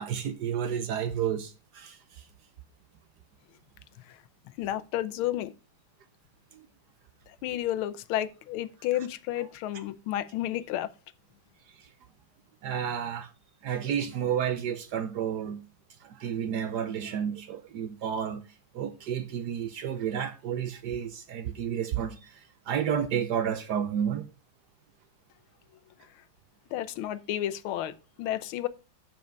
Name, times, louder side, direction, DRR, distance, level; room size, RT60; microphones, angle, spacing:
voice 1, 0.0-2.3 6.5-6.6 11.7-11.9 12.6-13.3 13.6-15.6 16.0-18.4 18.7-24.3, right 8 dB, 70° right, 1.0 m, -31 dB
voice 2, 4.6-5.5 7.3-10.9 26.7-28.7, left 13 dB, 85° left, 1.5 m, -31 dB
7.2 x 5.8 x 5.2 m
omnidirectional pair, 2.2 m